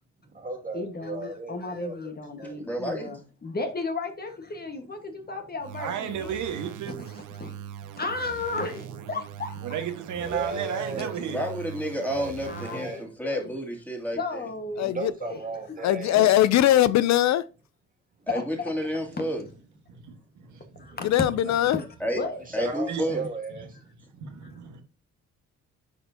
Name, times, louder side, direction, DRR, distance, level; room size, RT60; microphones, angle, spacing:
voice 1, 0.2-2.0 2.4-2.6 10.2-11.2 12.0-12.3 12.6-13.1 14.7-16.3 19.9-20.0 20.4-20.9 22.4-23.9 24.7-24.8, right 3 dB, 25° right, 2.2 m, -35 dB
voice 2, 0.7-6.4 7.4-7.6 8.0-9.7 12.4-13.6 14.1-14.9 15.2-15.4 16.2-16.3 18.3-18.7 20.7-21.1 21.6-21.8 22.1-22.4 23.1-23.3, left 3 dB, 30° left, 1.4 m, -34 dB
voice 3, 2.6-3.1 10.9-14.2 18.3-19.4 22.0-22.2 22.5-23.2, equal, 5° left, 2.4 m, -30 dB
sound 1, 5.6-13.0, right 9 dB, 90° right, 0.7 m, -41 dB
voice 4, 5.8-7.1 9.6-11.4 15.8-15.9 19.9-21.0 21.4-21.5 22.7-23.0 24.0-24.8, right 8 dB, 75° right, 1.4 m, -34 dB
voice 5, 14.8-15.1 15.8-17.4 21.0-21.8, left 13 dB, 65° left, 0.4 m, -20 dB
9.6 x 4.4 x 2.7 m
cardioid pair, 90°, 30 cm